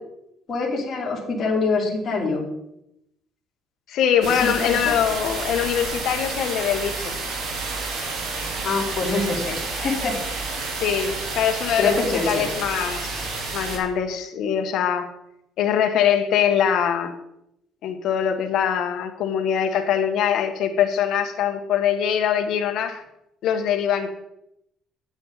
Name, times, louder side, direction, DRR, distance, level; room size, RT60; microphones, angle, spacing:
voice 1, 0.5-2.4 4.3-4.9 8.6-10.2 11.8-12.4, left 3 dB, 40° left, -5 dB, 3.2 m, -25 dB
voice 2, 3.9-7.1 10.7-15.1 15.6-17.1 17.8-23.0 23.4-24.1, left 8 dB, 70° left, 6 dB, 1.3 m, -23 dB
sound 1, 4.2-13.8, right 3 dB, 80° right, 3.4 m, -30 dB
10.5 x 8.9 x 4.1 m, 0.82 s
cardioid pair, 120°, 0 cm